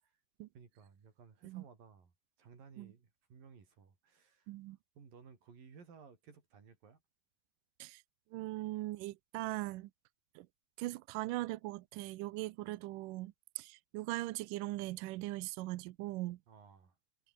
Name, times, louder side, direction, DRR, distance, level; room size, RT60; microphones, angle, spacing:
voice 1, 0.5-2.1 2.4-4.5 5.0-7.0 16.5-17.0, right 6 dB, 60° right, 6.1 m, -58 dB
voice 2, 4.5-4.8 7.8-8.0 8.3-9.9 10.4-10.5 10.8-16.4, right 18 dB, 80° right, 1.9 m, -40 dB
omnidirectional pair, 4.6 m